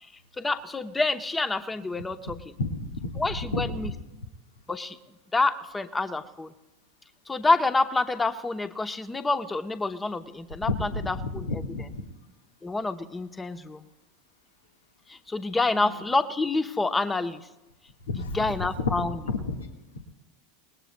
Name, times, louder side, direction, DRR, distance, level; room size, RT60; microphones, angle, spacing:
voice 1, 0.4-2.4 3.2-3.9 4.7-5.0 5.3-6.5 7.3-11.6 12.6-13.8 15.1-17.4 18.2-19.2, left 3 dB, 15° left, 10 dB, 0.9 m, -27 dB
voice 2, 2.6-3.7 10.7-12.0 15.7-16.0 18.1-18.9 19.3-19.7 19.9-20.0, left 3 dB, 70° left, 4 dB, 1.5 m, -31 dB
29.0 x 19.5 x 2.3 m, 1.1 s
figure-of-eight pair, 80°, 0 cm